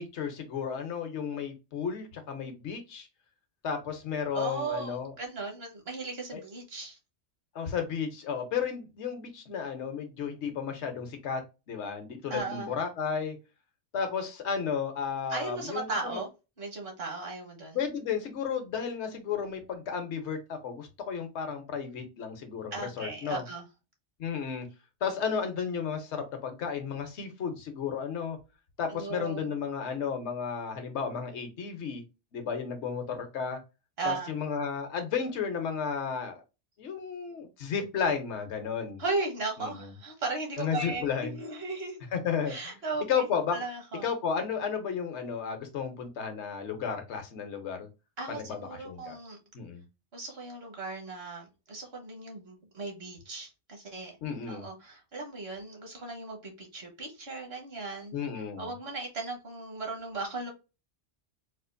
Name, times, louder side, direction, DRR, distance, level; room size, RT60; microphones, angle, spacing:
voice 1, 0.0-3.1 3.6-5.1 6.3-6.4 7.5-13.4 13.9-16.2 17.7-23.4 24.2-24.7 25.0-28.4 28.8-32.0 32.3-33.6 34.0-36.4 36.8-39.0 39.6-39.9 40.6-41.4 42.1-42.8 43.1-43.6 44.0-47.9 48.3-49.2 49.5-49.8 54.2-54.6 58.1-58.7, left 6 dB, 75° left, 1.1 m, -33 dB
voice 2, 4.3-7.0 12.3-12.7 15.3-16.3 16.6-17.8 22.7-23.7 28.9-29.5 34.0-34.3 39.0-42.0 42.5-43.3 43.5-44.1 48.2-49.4 50.1-54.1 54.5-58.1 58.6-60.5, right 3 dB, 65° right, 1.5 m, -36 dB
4.2 x 2.5 x 2.5 m
omnidirectional pair, 1.2 m